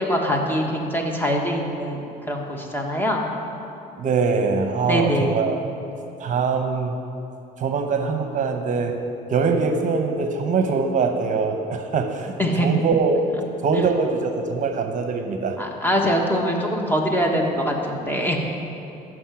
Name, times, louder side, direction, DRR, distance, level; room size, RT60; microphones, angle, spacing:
voice 1, 0.0-2.0 2.3-3.3 4.9-5.4 12.4-12.7 15.6-18.4, equal, 10° left, 1 dB, 1.5 m, -23 dB
voice 2, 4.0-5.6 6.2-7.0 7.6-9.0 9.3-13.2 13.6-15.6, right 4 dB, 50° right, 5 dB, 0.9 m, -23 dB
14.5 x 6.3 x 5.9 m, 2.8 s
cardioid pair, 110°, 17 cm